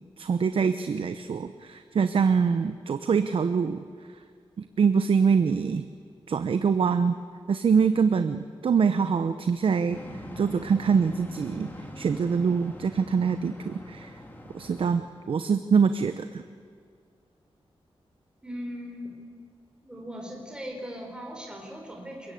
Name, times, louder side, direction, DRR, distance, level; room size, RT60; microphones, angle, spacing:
voice 1, 0.2-3.8 4.8-5.9 6.3-7.1 7.5-10.0 10.4-11.7 12.0-14.1 14.5-15.0 15.3-16.4, right 6 dB, 65° right, 10 dB, 0.9 m, -24 dB
sound 1, 9.9-15.0, left 1 dB, 20° left, 3.1 m, -43 dB
voice 2, 18.4-19.2 19.8-22.3, equal, 10° right, 1 dB, 4.8 m, -39 dB
29.5 x 22.5 x 8.5 m, 2.1 s
wide cardioid pair, 155°, 10 cm